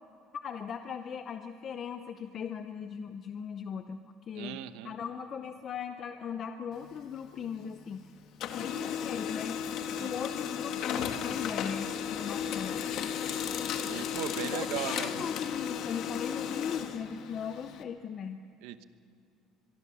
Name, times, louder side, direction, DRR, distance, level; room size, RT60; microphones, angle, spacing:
voice 1, 0.4-4.6 4.8-8.1 8.6-9.6 10.0-12.8 14.4-18.4, left 7 dB, 30° left, 8 dB, 0.7 m, -38 dB
voice 2, 4.3-4.9 10.0-10.2 13.9-15.3 18.6-18.8, right 13 dB, 90° right, 12 dB, 1.0 m, -38 dB
Printer, 6.7-8.0 8.3-17.8, left 8 dB, 50° left, 1.4 m, -35 dB
23.5 x 23.5 x 7.0 m, 2.4 s
cardioid pair, 175°, 0 cm